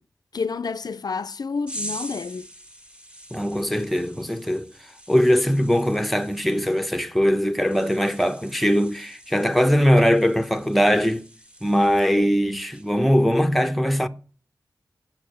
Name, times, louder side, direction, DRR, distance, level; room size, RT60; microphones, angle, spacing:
voice 1, 0.3-2.5, left 5 dB, 65° left, 0.5 m, -29 dB
sound 1, 1.7-12.4 12.7-13.0, right 1 dB, 15° right, 1.7 m, -43 dB
voice 2, 3.3-4.7 5.1-11.2 11.6-14.1, equal, ahead, 0.8 m, -21 dB
8.5 x 6.2 x 7.8 m
wide cardioid pair, 70°, 7 cm